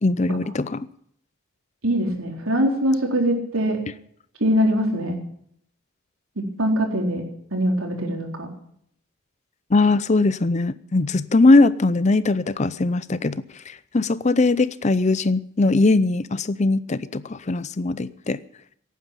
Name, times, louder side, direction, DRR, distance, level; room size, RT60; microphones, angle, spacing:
voice 1, 0.0-0.9 9.7-18.4, left 3 dB, 35° left, 0.5 m, -20 dB
voice 2, 1.8-3.8 4.4-5.1 6.6-7.2 7.5-8.5, equal, 85° right, 4.0 m, -22 dB
17.5 x 9.4 x 8.4 m
head